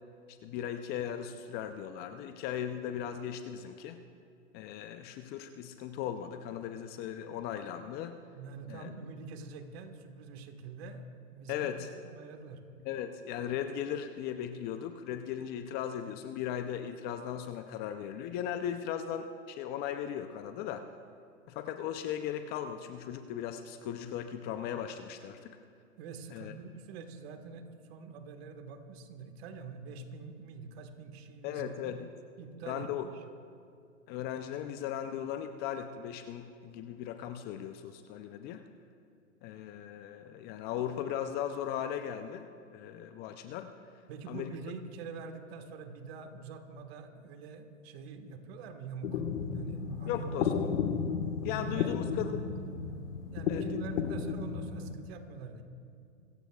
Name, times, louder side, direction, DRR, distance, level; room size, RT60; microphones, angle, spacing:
voice 1, 0.3-4.0 4.5-8.2 8.7-8.9 11.5-11.9 12.8-20.9 21.5-25.6 26.3-26.5 31.4-32.1 32.7-33.1 34.1-38.6 39.4-43.7 44.3-44.5 50.1-50.8 51.4-52.3 53.5-53.8, left 9 dB, 25° left, 8 dB, 0.5 m, -37 dB
voice 2, 8.3-12.6 26.0-31.9 32.4-33.2 44.1-50.5 51.6-52.0 53.3-55.6, right 4 dB, 50° right, 6 dB, 1.6 m, -46 dB
sound 1, 49.0-54.9, left 6 dB, 65° left, 1.5 m, -33 dB
25.5 x 15.0 x 2.4 m, 2.4 s
hypercardioid pair, 125°, 39 cm